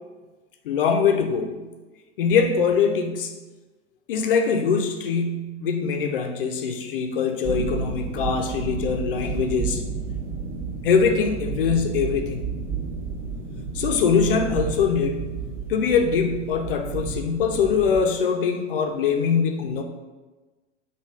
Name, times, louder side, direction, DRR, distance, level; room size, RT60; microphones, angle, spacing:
voice 1, 0.6-1.6 2.2-3.4 4.1-9.8 10.8-12.4 13.7-15.3 15.7-19.8, left 6 dB, 50° left, 4 dB, 0.5 m, -23 dB
sound 1, 7.4-18.0, right 5 dB, 45° right, 1.0 m, -31 dB
3.1 x 2.3 x 3.2 m, 1.2 s
figure-of-eight pair, 100°, 36 cm